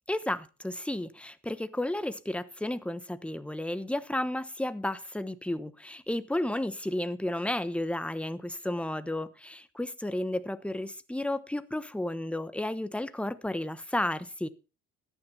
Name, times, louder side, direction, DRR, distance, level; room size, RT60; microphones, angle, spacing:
voice 1, 0.1-14.5, left 1 dB, 5° left, 1.0 m, -32 dB
14.0 x 10.0 x 4.1 m
cardioid pair, 90°, 30 cm